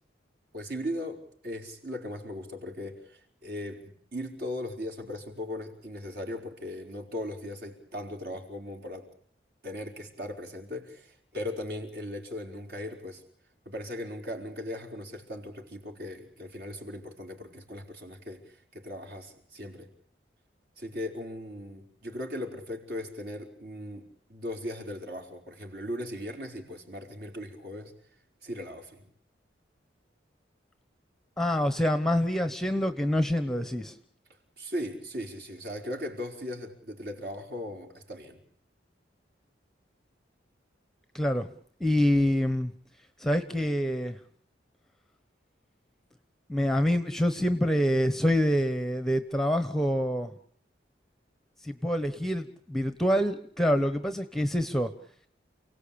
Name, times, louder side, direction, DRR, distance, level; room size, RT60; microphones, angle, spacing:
voice 1, 0.5-9.1 9.6-13.2 13.6-19.9 20.8-24.0 24.3-27.9 28.4-29.0 34.6-38.4, left 1 dB, 55° right, 2 dB, 5.0 m, -38 dB
voice 2, 31.4-34.0 41.1-41.5 41.8-42.7 43.2-44.2 46.5-50.3 51.6-54.9, equal, ahead, 10 dB, 1.1 m, -26 dB
29.5 x 17.5 x 8.7 m, 0.62 s
head